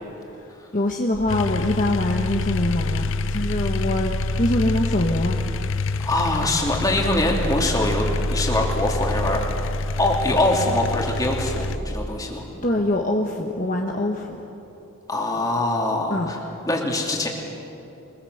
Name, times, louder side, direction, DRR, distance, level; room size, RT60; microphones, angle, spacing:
voice 1, 0.7-5.4 6.4-6.5 12.6-14.4 16.1-16.3, left 1 dB, 35° left, 1 dB, 1.2 m, -24 dB
sound 1, 1.1-12.1, equal, 30° right, 1.4 m, -30 dB
sound 2, 1.3-11.8, left 4 dB, 55° left, 0.5 m, -28 dB
voice 2, 6.0-9.4 10.0-12.4 15.1-16.4 16.7-17.3, left 1 dB, 15° left, 0 dB, 2.8 m, -23 dB
24.0 x 21.0 x 8.0 m, 3.0 s
head